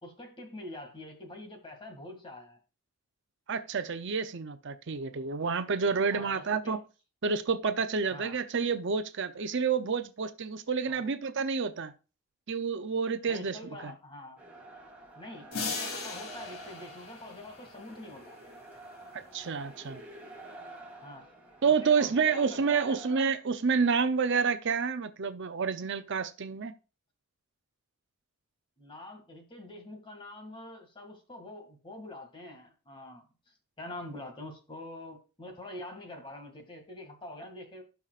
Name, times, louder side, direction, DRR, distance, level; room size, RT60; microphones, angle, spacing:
voice 1, 0.0-2.6 6.1-6.8 8.1-8.4 10.9-11.0 13.3-14.4 15.2-18.4 21.0-21.3 21.6-23.0 28.8-37.8, left 1 dB, 25° left, 2.1 m, -45 dB
voice 2, 3.5-6.8 7.2-11.9 12.5-13.6 13.8-13.9 19.1-20.0 21.6-26.7, right 5 dB, 55° right, 0.6 m, -29 dB
sound 1, 14.4-23.2, right 1 dB, 5° right, 2.9 m, -49 dB
sound 2, 15.5-18.3, left 3 dB, 90° left, 3.0 m, -38 dB
17.0 x 5.7 x 2.4 m
head